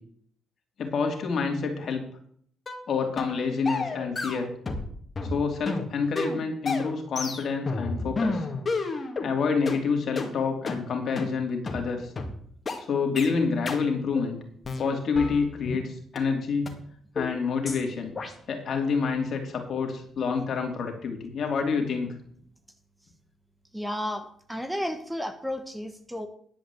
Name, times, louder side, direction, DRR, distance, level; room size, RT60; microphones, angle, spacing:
voice 1, 0.8-2.0 2.9-4.5 5.3-8.5 9.2-12.1 12.8-14.4 14.8-16.8 17.1-18.1 18.5-22.1, left 5 dB, 60° left, 3 dB, 2.7 m, -28 dB
sound 1, 2.7-2.8 3.2-3.4 3.7-4.9 5.1-9.3 9.7-9.8 10.2-10.3 10.7-10.8 11.2-11.3 11.7-11.8 12.2-12.3 12.7-12.8 13.2-13.3 13.7-13.8 14.2-14.3 14.6-15.8 16.2-16.3 16.7-16.8 17.2-17.3 17.7-17.8 18.2-18.3, left 3 dB, 30° left, 2.0 m, -31 dB
voice 2, 23.7-26.3, equal, 5° right, 7 dB, 1.1 m, -33 dB
10.5 x 5.0 x 8.3 m, 0.63 s
cardioid pair, 90°, 0 cm